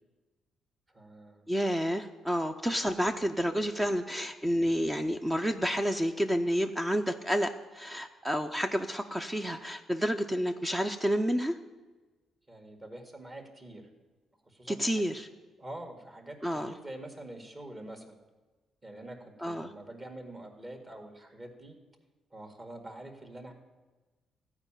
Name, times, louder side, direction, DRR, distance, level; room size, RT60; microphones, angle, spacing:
voice 1, 0.9-1.5 12.5-13.9 14.5-15.0 15.6-18.2 18.8-21.8 22.3-23.5, right 1 dB, 25° right, 4 dB, 1.9 m, -46 dB
voice 2, 1.5-11.6 14.7-15.3 16.4-16.7 19.4-19.7, equal, 10° right, 6 dB, 0.6 m, -30 dB
14.0 x 4.9 x 8.9 m, 1.3 s
cardioid pair, 90°, 0 cm